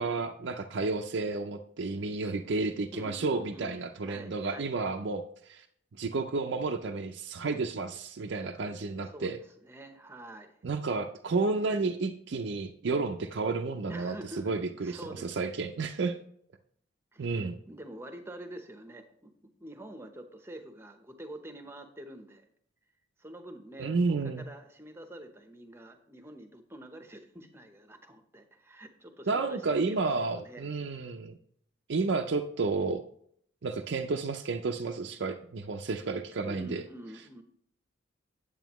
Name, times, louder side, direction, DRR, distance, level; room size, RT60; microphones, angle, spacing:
voice 1, 0.0-5.7 5.9-9.4 10.6-16.2 17.2-17.6 23.8-24.5 29.3-31.3 31.9-33.0 33.6-36.8, right 3 dB, 60° right, 3 dB, 0.5 m, -31 dB
voice 2, 2.9-3.8 4.0-4.8 9.1-10.5 13.9-14.5 14.8-15.7 17.1-22.5 23.2-30.1 30.3-30.7 36.4-37.4, right 1 dB, 10° right, 7 dB, 0.8 m, -46 dB
9.0 x 8.4 x 3.0 m, 0.66 s
head